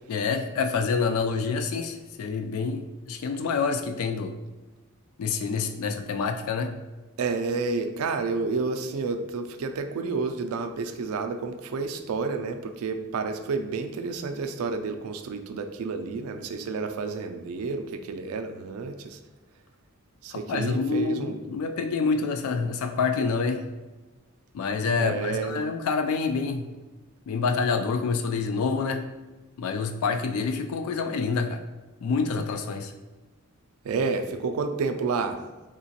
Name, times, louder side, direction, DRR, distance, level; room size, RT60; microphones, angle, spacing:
voice 1, 0.1-4.3 5.2-6.7 20.3-23.6 24.5-26.7 27.3-29.0 29.6-31.6 32.0-32.9, left 4 dB, 80° left, 6 dB, 0.3 m, -27 dB
voice 2, 7.2-19.2 20.2-21.4 25.0-25.6 33.8-35.4, right 4 dB, 80° right, 6 dB, 0.4 m, -30 dB
3.6 x 2.9 x 2.8 m, 1.2 s
head